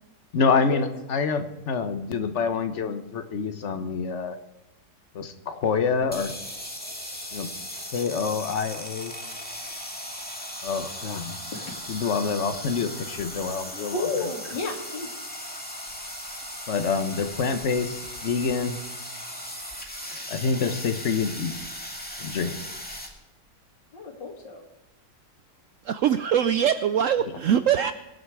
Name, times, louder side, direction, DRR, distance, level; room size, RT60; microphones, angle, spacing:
voice 1, 0.3-4.4 5.1-6.3 7.3-7.5 7.9-9.1 10.6-11.4 11.9-14.1 16.7-18.8 20.3-21.6 22.2-22.6, left 5 dB, 45° left, 8 dB, 1.3 m, -27 dB
sound 1, 6.1-23.1, equal, 5° left, 2.0 m, -37 dB
voice 2, 13.9-15.1 23.9-24.6, left 3 dB, 75° left, 2 dB, 2.9 m, -31 dB
voice 3, 25.8-27.9, right 9 dB, 80° right, 11 dB, 0.7 m, -22 dB
23.5 x 8.0 x 4.8 m, 1.0 s
omnidirectional pair, 2.0 m